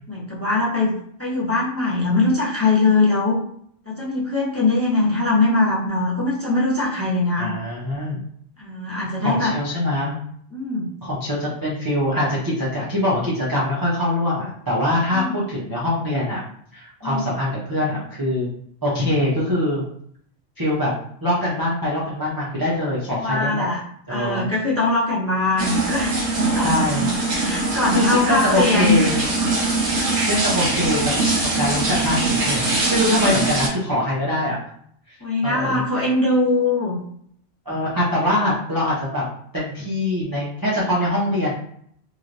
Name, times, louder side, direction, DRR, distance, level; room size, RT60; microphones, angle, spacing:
voice 1, 0.1-0.9 1.2-3.4 3.9-7.5 8.6-9.5 10.5-10.9 15.1-15.4 17.0-17.3 23.2-23.8 24.1-26.8 27.3-29.1 30.7-30.9 35.2-37.0, left 2 dB, 15° left, -7 dB, 0.8 m, -21 dB
voice 2, 7.4-8.2 9.2-10.2 11.0-16.4 16.7-18.5 18.8-19.8 20.6-20.9 21.2-23.7 24.1-24.4 26.6-27.1 27.9-29.1 30.3-34.6 35.4-35.8 37.7-39.2 39.5-41.5, left 1 dB, 25° right, -8 dB, 0.5 m, -23 dB
sound 1, 25.6-33.7, right 2 dB, 85° right, 1.3 m, -22 dB
3.2 x 2.8 x 2.5 m, 0.65 s
omnidirectional pair, 1.3 m